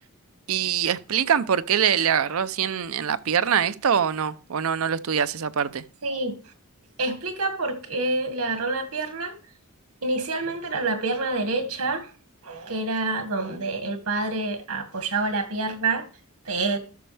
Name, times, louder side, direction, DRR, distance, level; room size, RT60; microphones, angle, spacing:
voice 1, 0.5-5.8, right 8 dB, 70° right, 0.5 m, -24 dB
voice 2, 6.0-6.4 7.0-9.4 10.0-12.1 12.4-16.0 16.5-16.8, right 3 dB, 85° right, 1.9 m, -27 dB
13.0 x 6.2 x 3.4 m
head